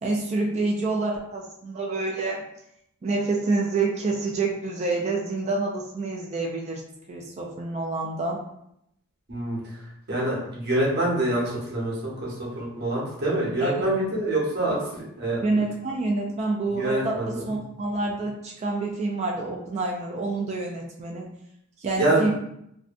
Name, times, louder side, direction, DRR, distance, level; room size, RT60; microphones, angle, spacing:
voice 1, 0.0-2.4 3.0-6.8 7.1-8.4 13.6-14.2 15.4-21.3 21.8-22.3, right 3 dB, 30° right, -1 dB, 0.3 m, -27 dB
voice 2, 10.1-15.4 16.7-17.5 22.0-22.3, right 1 dB, 50° right, -5 dB, 0.9 m, -26 dB
2.6 x 2.1 x 2.5 m, 0.76 s
head